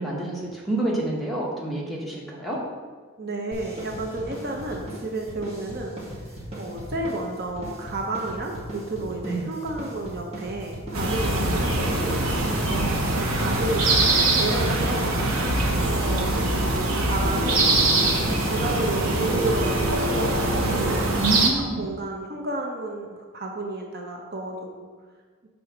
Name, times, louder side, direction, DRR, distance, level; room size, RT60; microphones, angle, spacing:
voice 1, 0.0-2.6 9.2-9.4 11.4-11.6 12.7-13.1 15.7-15.9 21.2-21.8, right 2 dB, ahead, -5 dB, 1.3 m, -28 dB
voice 2, 3.2-5.9 6.6-12.2 13.1-15.1 15.8-17.8 18.4-20.3 20.8-21.2 21.8-24.9, right 2 dB, 50° right, 1 dB, 0.7 m, -31 dB
sound 1, 3.5-21.3, right 1 dB, 30° right, 1.5 m, -38 dB
sound 2, 10.9-21.5, right 2 dB, 85° right, 1.1 m, -23 dB
6.5 x 4.0 x 5.9 m, 1.5 s
head